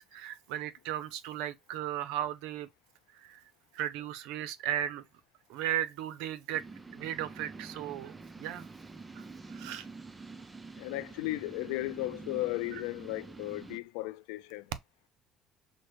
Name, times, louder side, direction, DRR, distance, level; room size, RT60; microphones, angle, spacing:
voice 1, 0.0-2.7 3.1-3.4 3.7-5.0 5.5-6.7 6.9-8.7 9.2-9.3 9.5-9.9, right 11 dB, 85° right, 0.5 m, -36 dB
sound 1, 6.5-13.8, right 4 dB, 20° right, 0.5 m, -47 dB
voice 2, 10.7-14.7, left 19 dB, 90° left, 0.3 m, -35 dB
6.2 x 2.1 x 3.0 m
supercardioid pair, 95°, 0 cm